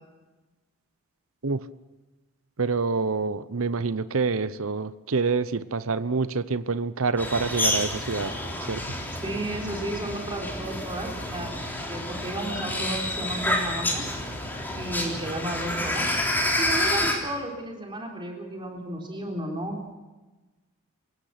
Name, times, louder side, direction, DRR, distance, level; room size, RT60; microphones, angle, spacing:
voice 1, 2.6-8.3 8.7-9.0, right 4 dB, 70° right, 14 dB, 0.8 m, -27 dB
sound 1, 7.2-17.1, left 1 dB, 10° left, 3.5 m, -29 dB
voice 2, 9.2-11.6 11.9-14.0 14.7-16.1 16.6-19.8, right 1 dB, 20° right, 1 dB, 3.8 m, -33 dB
27.5 x 17.0 x 5.9 m, 1.2 s
head